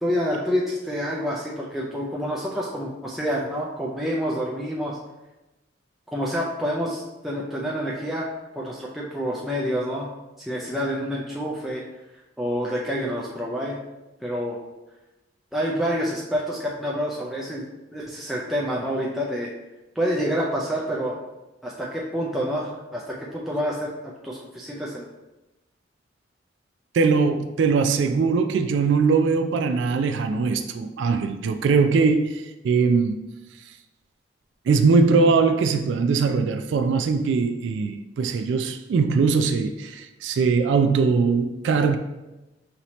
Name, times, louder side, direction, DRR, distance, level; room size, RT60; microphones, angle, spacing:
voice 1, 0.0-5.0 6.1-8.3 8.6-10.1 10.4-11.8 12.4-13.8 14.2-14.6 15.5-17.7 17.9-19.5 20.0-21.2 21.6-25.1, equal, ahead, 0.4 m, -28 dB
voice 2, 26.9-33.2 34.7-42.0, right 4 dB, 75° right, 0.3 m, -21 dB
5.7 x 2.7 x 3.0 m
head